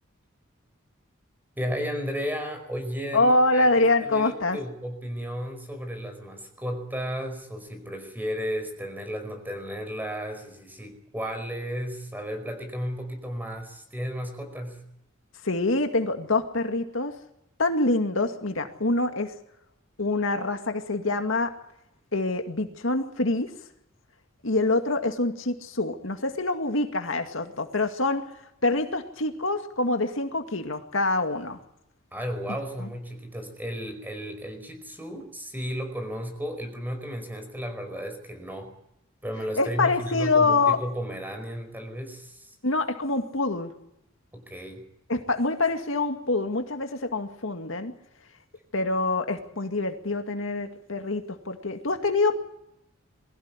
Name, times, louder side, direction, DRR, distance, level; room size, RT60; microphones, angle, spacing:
voice 1, 1.6-14.8 32.1-38.7 39.2-42.5 44.3-44.8, equal, 10° right, 6 dB, 5.1 m, -34 dB
voice 2, 3.1-4.6 15.4-17.1 17.6-19.3 20.0-21.5 22.1-23.5 24.4-28.2 28.6-31.6 32.8-32.9 39.6-40.8 42.6-43.7 45.1-47.9 48.7-52.4, left 2 dB, 75° left, 6 dB, 2.2 m, -25 dB
22.5 x 16.0 x 9.7 m, 0.80 s
head